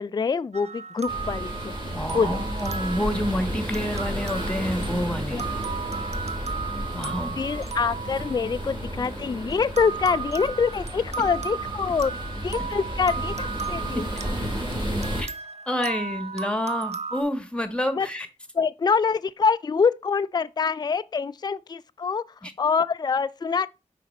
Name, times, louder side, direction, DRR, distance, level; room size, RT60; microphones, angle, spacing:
voice 1, 0.0-2.4 5.3-5.4 7.4-14.1 17.9-18.1 18.5-23.7, left 5 dB, 30° left, 0.3 m, -25 dB
sound 1, 0.5-9.2 9.8-17.2, right 5 dB, 55° right, 0.7 m, -35 dB
sound 2, 1.1-15.2, equal, 40° right, 2.8 m, -32 dB
voice 2, 1.9-5.5 6.9-7.4 13.9-14.0 15.2-15.3 15.7-18.3 22.4-22.5, equal, 10° left, 1.4 m, -28 dB
5.8 x 4.1 x 4.1 m
cardioid pair, 40°, 13 cm